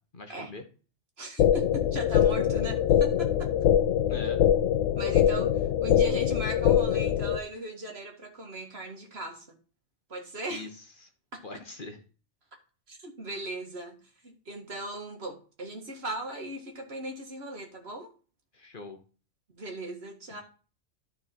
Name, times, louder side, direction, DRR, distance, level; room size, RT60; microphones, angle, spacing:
voice 1, 0.1-0.6 4.1-4.4 10.5-10.7 11.0-11.1 11.4-12.0 18.5-19.0 20.3-20.4, left 3 dB, 45° left, 5 dB, 1.1 m, -41 dB
voice 2, 1.2-3.5 5.0-9.6 10.1-10.7 11.3-11.4 12.9-18.1 19.5-20.4, right 1 dB, 55° right, 2 dB, 2.0 m, -38 dB
sound 1, 1.4-7.4, left 10 dB, 85° left, 1.0 m, -23 dB
13.0 x 4.4 x 4.4 m, 0.38 s
omnidirectional pair, 1.3 m